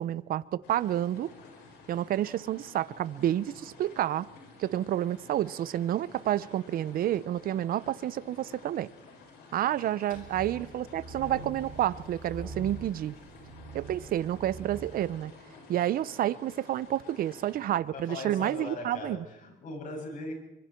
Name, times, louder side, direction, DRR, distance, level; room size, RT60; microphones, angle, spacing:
voice 1, 0.0-1.3 1.9-4.3 4.6-8.9 9.5-13.1 13.7-15.3 15.7-19.2, right 12 dB, 60° right, 0.8 m, -29 dB
sound 1, 0.6-17.7, left 4 dB, 75° left, 7.2 m, -53 dB
sound 2, 10.1-15.1, right 2 dB, 10° right, 4.7 m, -44 dB
voice 2, 17.9-20.3, left 2 dB, 50° left, 7.5 m, -39 dB
25.0 x 23.0 x 4.5 m
cardioid pair, 110°, 17 cm